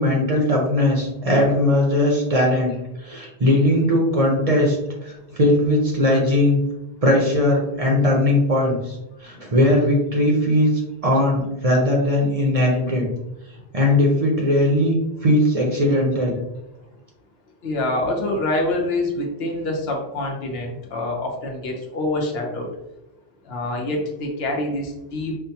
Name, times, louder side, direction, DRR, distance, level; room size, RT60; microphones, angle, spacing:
voice 1, 0.0-2.7 3.0-4.8 5.0-6.6 7.0-10.7 11.0-13.1 13.7-16.4, left 1 dB, 40° right, -1 dB, 0.7 m, -19 dB
voice 2, 17.6-22.7 23.5-25.4, left 1 dB, 70° left, 1 dB, 1.0 m, -26 dB
5.4 x 2.1 x 2.7 m, 0.94 s
omnidirectional pair, 1.1 m